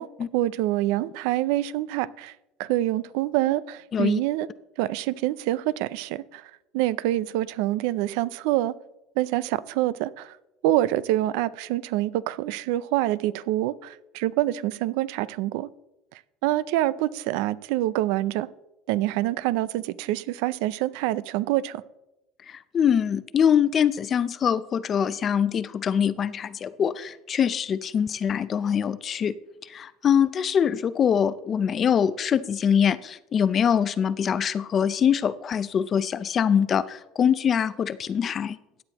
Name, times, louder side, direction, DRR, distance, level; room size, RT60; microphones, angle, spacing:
voice 1, 0.3-2.3 2.6-4.5 4.8-8.7 9.2-10.4 10.6-15.7 16.4-18.5 18.9-21.8, right 15 dB, 80° right, 0.4 m, -26 dB
voice 2, 22.5-29.3 29.6-38.6, left 8 dB, 30° left, 0.5 m, -23 dB
16.0 x 9.7 x 2.9 m
cardioid pair, 150°, 0 cm